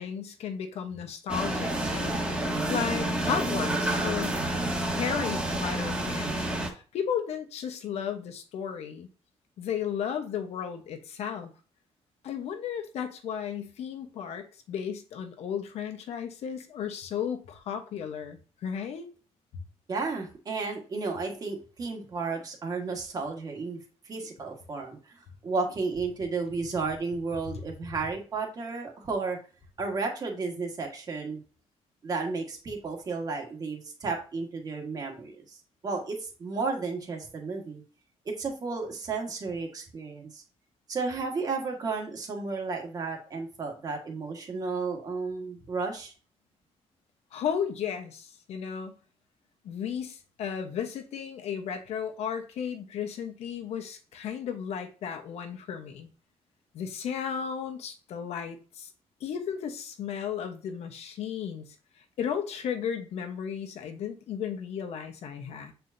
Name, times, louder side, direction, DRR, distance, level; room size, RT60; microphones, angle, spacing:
voice 1, 0.0-2.2 2.7-4.4 5.0-9.1 9.6-11.5 12.2-19.1 47.3-49.0 49.6-56.1 56.7-58.9 59.2-61.7 62.2-65.7, left 8 dB, 75° left, 1.0 m, -34 dB
sound 1, 1.3-6.7, right 1 dB, 10° right, 1.3 m, -29 dB
voice 2, 19.9-23.8 24.0-25.2 25.4-29.4 29.8-31.4 32.0-35.6 35.8-37.8 38.2-40.4 40.9-46.1, right 4 dB, 35° right, 1.6 m, -33 dB
7.7 x 4.5 x 2.7 m
cardioid pair, 165°, 11 cm